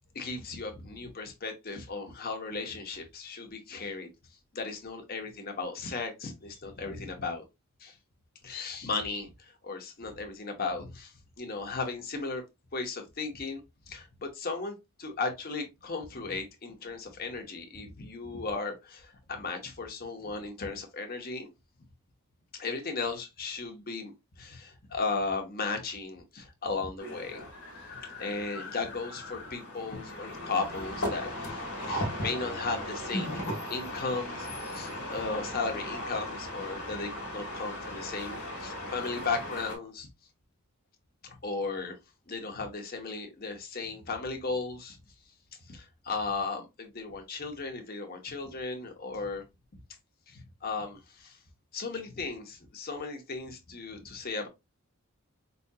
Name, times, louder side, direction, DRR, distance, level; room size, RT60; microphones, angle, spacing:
voice 1, 0.1-4.1 4.5-7.4 7.8-7.9 8.4-12.4 12.7-13.6 13.9-21.5 22.5-27.4 28.2-31.6 31.9-33.4 33.7-40.1 41.2-42.0 42.3-45.0 45.6-49.4 50.3-51.4 51.7-54.5, left 4 dB, 40° left, 0.9 m, -36 dB
sound 1, 27.0-39.8, left 1 dB, 75° left, 1.3 m, -37 dB
5.1 x 2.7 x 2.2 m
head